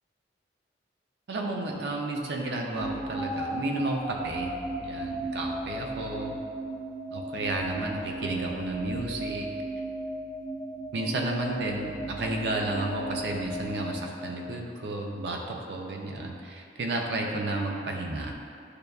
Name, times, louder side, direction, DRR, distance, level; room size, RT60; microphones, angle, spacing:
voice 1, 1.3-4.5 4.8-6.4 7.1-9.5 10.9-18.3, right 2 dB, 70° right, 1 dB, 0.4 m, -32 dB
sound 1, 2.8-14.9, right 1 dB, ahead, 0.6 m, -36 dB
6.5 x 2.2 x 2.3 m, 2.4 s
head